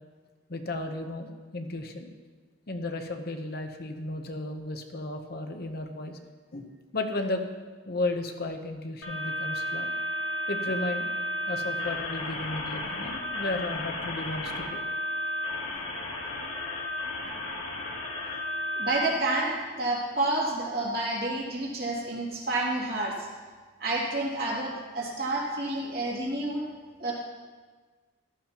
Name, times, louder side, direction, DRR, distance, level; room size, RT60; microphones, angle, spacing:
voice 1, 0.5-2.1 2.7-6.2 6.5-7.4 7.9-9.9 10.5-11.1 11.5-14.8, left 2 dB, 50° left, 5 dB, 0.9 m, -34 dB
sound 1, 9.0-19.1, left 1 dB, 85° left, 1.6 m, -33 dB
voice 2, 18.7-23.3 23.8-26.6 27.0-27.1, right 2 dB, 50° right, -4 dB, 2.6 m, -29 dB
14.5 x 12.0 x 3.0 m, 1.4 s
head